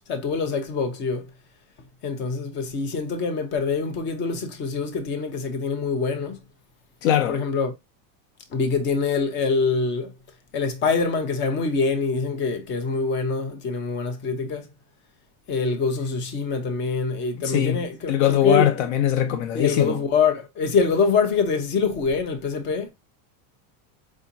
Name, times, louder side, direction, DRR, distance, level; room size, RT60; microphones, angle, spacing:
voice 1, 0.1-1.3 2.0-6.4 7.3-7.7 8.5-10.1 10.5-14.7 15.5-18.7 19.5-22.9, left 4 dB, 25° left, 0.7 m, -25 dB
voice 2, 7.0-7.4 17.4-17.8 18.1-20.0, left 11 dB, 60° left, 0.6 m, -21 dB
4.8 x 2.8 x 2.6 m
supercardioid pair, 160°, 43 cm